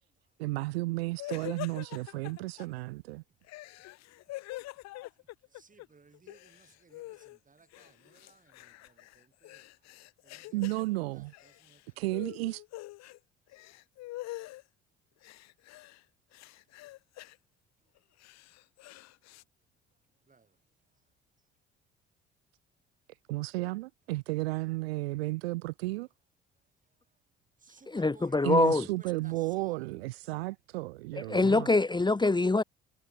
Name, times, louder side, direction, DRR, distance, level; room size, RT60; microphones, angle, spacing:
voice 1, 0.4-3.2 10.5-11.3 12.0-12.6 23.3-26.1 28.4-31.7, right 21 dB, 70° right, 1.1 m, -33 dB
sound 1, 1.2-2.7 3.4-5.9 6.1-7.4 7.7-10.9 11.3-11.8 12.1-13.2 13.5-14.6 15.2-16.0 16.3-17.4 18.0-19.4, left 18 dB, 55° left, 1.9 m, -45 dB
voice 2, 5.5-9.7 10.2-10.6 11.6-11.8 20.3-20.5 27.6-28.9 29.2-29.7, right 4 dB, 25° right, 4.8 m, -60 dB
voice 3, 27.9-28.8 31.3-32.6, left 3 dB, 15° left, 1.6 m, -24 dB
figure-of-eight pair, 55°, 32 cm